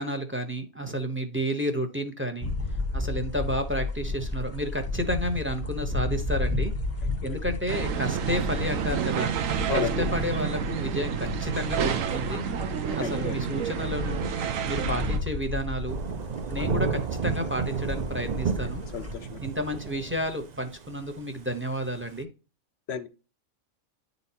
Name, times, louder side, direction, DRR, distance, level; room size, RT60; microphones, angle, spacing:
voice 1, 0.0-2.5 2.9-6.7 7.2-9.3 9.7-12.4 12.9-14.3 14.7-16.0 16.5-18.8 19.4-22.3, equal, 10° right, 0.6 m, -31 dB
sound 1, 2.4-19.1, left 2 dB, 10° left, 0.9 m, -33 dB
sound 2, 7.7-15.2, right 7 dB, 75° right, 1.0 m, -29 dB
voice 2, 9.7-10.0 13.0-13.4 18.9-19.4 22.9-23.1, left 7 dB, 60° left, 0.8 m, -31 dB
Thunder / Rain, 15.9-22.2, right 5 dB, 60° right, 0.4 m, -32 dB
10.0 x 4.0 x 2.8 m
omnidirectional pair, 1.4 m